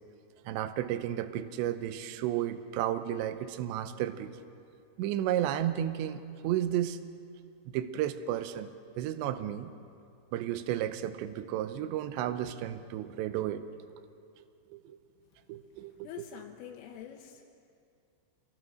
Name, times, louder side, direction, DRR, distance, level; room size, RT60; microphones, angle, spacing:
voice 1, 0.5-4.3 5.0-7.0 7.7-8.7 9.0-9.7 10.3-13.7 14.7-15.0 15.5-16.4, right 11 dB, 80° right, 10 dB, 2.7 m, -33 dB
voice 2, 16.0-17.4, left 10 dB, 80° left, 4 dB, 3.6 m, -45 dB
26.5 x 19.5 x 6.4 m, 2.4 s
omnidirectional pair, 5.9 m